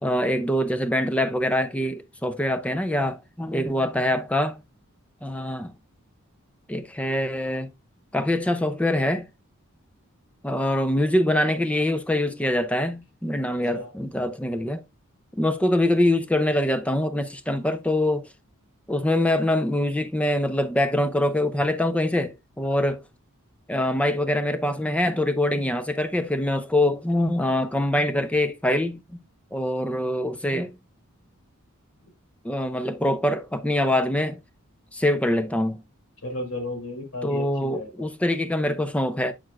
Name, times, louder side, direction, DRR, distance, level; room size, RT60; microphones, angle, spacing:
voice 1, 0.0-4.6 5.2-5.7 6.7-7.7 8.1-9.3 10.4-14.8 15.3-18.3 18.9-23.0 23.7-29.2 29.5-30.8 32.4-34.4 34.9-35.8 37.2-39.3, left 1 dB, 5° left, 0.4 m, -24 dB
voice 2, 36.2-38.1, left 1 dB, 65° left, 2.4 m, -34 dB
7.5 x 6.4 x 2.3 m
head